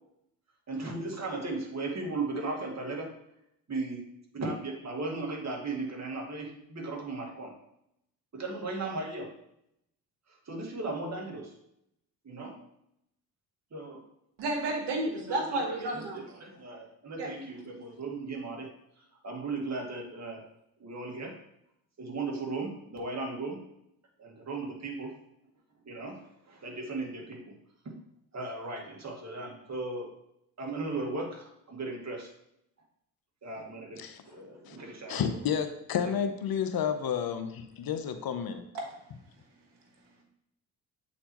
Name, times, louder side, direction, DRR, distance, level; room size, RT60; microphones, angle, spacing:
voice 1, 0.7-3.2 3.7-4.0 4.3-7.5 8.3-9.3 10.5-11.5 12.2-12.6 13.7-14.0 15.3-18.7 19.2-20.4 20.8-21.4 22.0-23.6 24.2-25.1 25.9-27.4 27.9-28.0 28.3-30.1 30.6-32.3 33.4-35.2 36.0-36.1, right 3 dB, 40° right, 0 dB, 1.9 m, -36 dB
voice 2, 14.4-16.2 17.2-17.3 38.7-38.9, right 2 dB, 75° right, 2 dB, 1.5 m, -31 dB
voice 3, 35.1-38.6, left 7 dB, 55° left, 9 dB, 0.8 m, -31 dB
7.9 x 4.2 x 3.0 m, 0.77 s
supercardioid pair, 60°, 42 cm